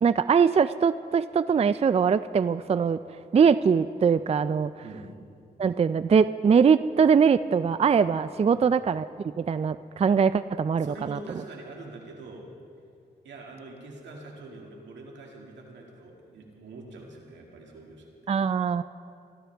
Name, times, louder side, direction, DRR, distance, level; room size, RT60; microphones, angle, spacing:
voice 1, 0.0-3.0 3.3-4.7 5.6-9.1 9.4-11.2 18.3-18.8, right 6 dB, 35° right, 14 dB, 0.4 m, -22 dB
voice 2, 4.8-5.1 8.5-8.7 10.8-12.5 13.2-18.3, right 2 dB, 85° right, 0 dB, 2.2 m, -44 dB
24.0 x 12.5 x 3.5 m, 2.4 s
cardioid pair, 50°, 18 cm